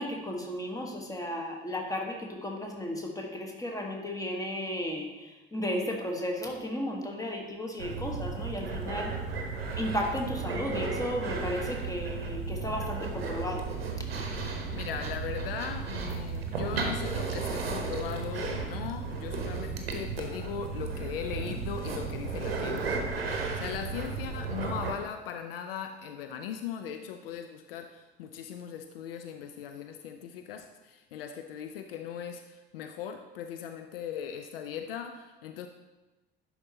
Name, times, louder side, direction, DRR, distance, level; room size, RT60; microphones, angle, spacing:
voice 1, 0.0-9.1 9.8-13.7, left 1 dB, 10° left, 1 dB, 1.3 m, -34 dB
sound 1, 7.8-24.9, right 4 dB, 80° right, 0.8 m, -34 dB
voice 2, 14.7-35.7, left 8 dB, 70° left, 7 dB, 0.4 m, -39 dB
10.5 x 4.2 x 2.8 m, 1.1 s
figure-of-eight pair, 55°, 29 cm